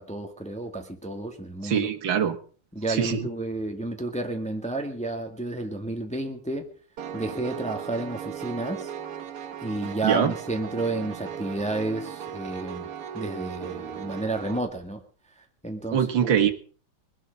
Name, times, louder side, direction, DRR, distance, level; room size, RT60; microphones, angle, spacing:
voice 1, 0.0-1.9 2.7-6.7 7.1-8.9 9.6-12.9 13.1-15.0 15.4-16.3, right 2 dB, 5° left, 4 dB, 1.8 m, -31 dB
voice 2, 1.6-2.4 2.9-3.3 10.0-10.3 15.9-16.5, right 8 dB, 60° right, 5 dB, 2.4 m, -23 dB
Piano, 7.0-14.6, right 9 dB, 85° right, 2.3 m, -37 dB
21.5 x 12.0 x 5.3 m, 0.41 s
omnidirectional pair, 2.4 m